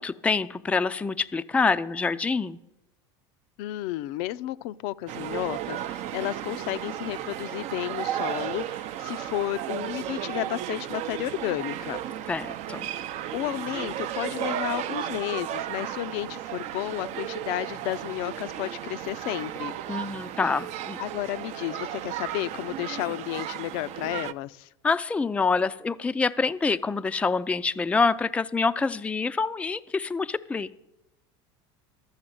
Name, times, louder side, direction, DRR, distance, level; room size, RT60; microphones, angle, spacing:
voice 1, 0.0-2.6 12.3-12.9 19.9-21.0 24.8-30.7, left 4 dB, 10° left, 11 dB, 0.4 m, -26 dB
voice 2, 3.6-12.0 13.3-19.8 21.0-24.7, left 16 dB, 65° left, 13 dB, 0.5 m, -32 dB
sound 1, 5.1-24.3, right 11 dB, 50° right, 0.6 m, -34 dB
12.5 x 7.1 x 7.7 m, 0.89 s
supercardioid pair, 105°, 14 cm